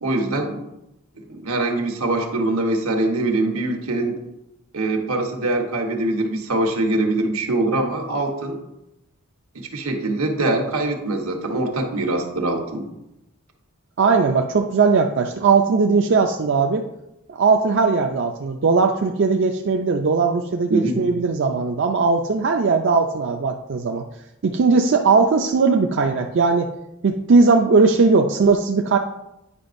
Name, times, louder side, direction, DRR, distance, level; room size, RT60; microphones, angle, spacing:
voice 1, 0.0-0.6 1.2-4.1 4.7-8.6 9.5-12.9 20.7-21.0, right 2 dB, 80° right, 3 dB, 1.2 m, -23 dB
voice 2, 14.0-16.8 17.3-24.0 24.4-26.7 27.0-29.0, right 4 dB, 55° right, 3 dB, 0.4 m, -18 dB
9.7 x 5.7 x 2.6 m, 0.88 s
head